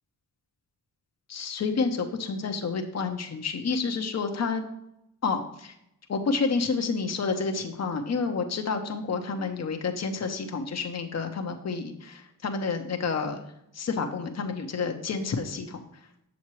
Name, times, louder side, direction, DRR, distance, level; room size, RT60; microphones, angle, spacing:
voice 1, 1.3-4.6 5.2-5.7 6.1-13.5 13.7-15.8, left 4 dB, 50° left, 5 dB, 0.9 m, -29 dB
7.2 x 7.1 x 3.2 m, 0.79 s
wide cardioid pair, 95°, 35 cm